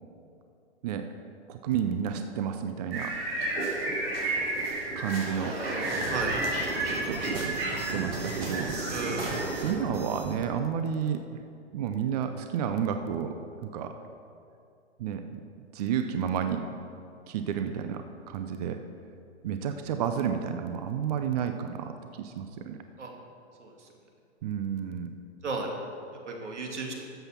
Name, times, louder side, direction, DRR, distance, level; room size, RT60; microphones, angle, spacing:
voice 1, 1.5-3.1 3.5-3.6 5.0-5.6 6.8-8.8 9.3-11.2 11.7-13.3 13.6-13.9 15.0-15.4 15.7-16.6 17.3-18.8 19.4-22.8 24.4-25.1, right 8 dB, 35° right, 7 dB, 0.6 m, -31 dB
sound 1, 2.9-9.7, right 2 dB, 60° right, 3.3 m, -31 dB
sound 2, 5.0-10.5, right 2 dB, 20° right, 1.8 m, -38 dB
voice 2, 8.9-9.3 23.0-23.1 23.6-23.7 25.4-25.7 26.3-26.9, right 3 dB, 85° right, 1 dB, 2.5 m, -34 dB
13.0 x 7.9 x 5.8 m, 2.5 s
hypercardioid pair, 140°, 35 cm